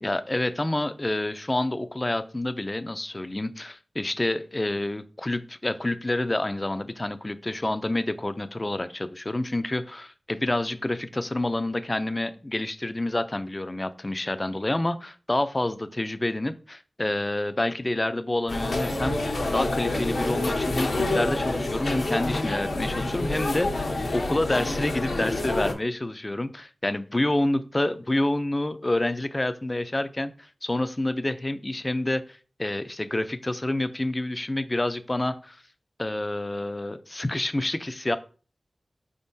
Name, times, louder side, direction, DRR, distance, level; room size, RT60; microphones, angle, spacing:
voice 1, 0.0-35.6 36.0-38.2, left 1 dB, 25° left, 12 dB, 0.3 m, -28 dB
sound 1, 18.5-25.7, left 2 dB, 90° left, 0.8 m, -27 dB
4.9 x 3.6 x 2.6 m, 0.38 s
wide cardioid pair, 75°, 0 cm